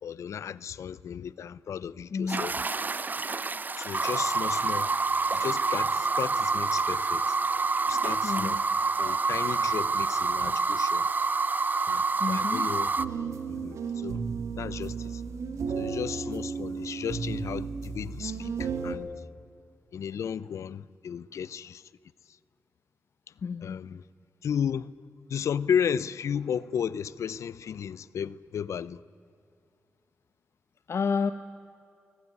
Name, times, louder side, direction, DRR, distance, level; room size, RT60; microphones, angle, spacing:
voice 1, 0.0-2.6 3.8-4.9 5.3-7.4 7.9-8.6 9.0-11.1 11.9-12.9 13.5-14.2 14.6-15.2 15.8-19.1 19.9-21.9 23.6-24.0 24.4-24.9 25.3-29.0, left 8 dB, 85° left, 0.6 m, -34 dB
voice 2, 2.1-2.5 8.2-8.6 12.2-12.6 23.4-23.8 30.9-31.3, left 5 dB, 60° left, 0.9 m, -29 dB
sound 1, 2.3-13.0, right 4 dB, 35° right, 0.7 m, -27 dB
sound 2, 13.0-18.9, right 5 dB, 85° right, 2.7 m, -33 dB
23.0 x 19.0 x 9.6 m
cardioid pair, 75°, 5 cm